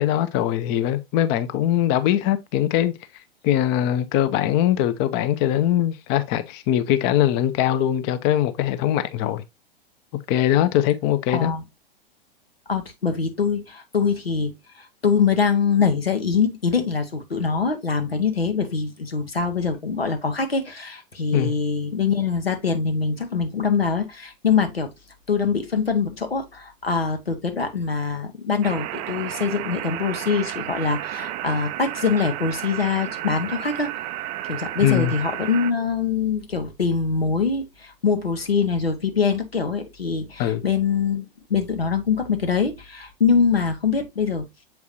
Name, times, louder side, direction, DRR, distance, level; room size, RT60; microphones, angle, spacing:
voice 1, 0.0-2.9 3.4-9.4 10.3-11.5 21.3-21.5 34.8-35.1 40.4-40.6, left 11 dB, 35° left, 0.8 m, -21 dB
voice 2, 11.3-11.6 12.7-14.5 14.8-24.9 25.3-41.2 41.5-44.4, left 5 dB, 90° left, 1.5 m, -23 dB
sound 1, 28.6-35.7, right 14 dB, 25° right, 0.4 m, -32 dB
7.4 x 4.7 x 2.7 m
figure-of-eight pair, 105°, 29 cm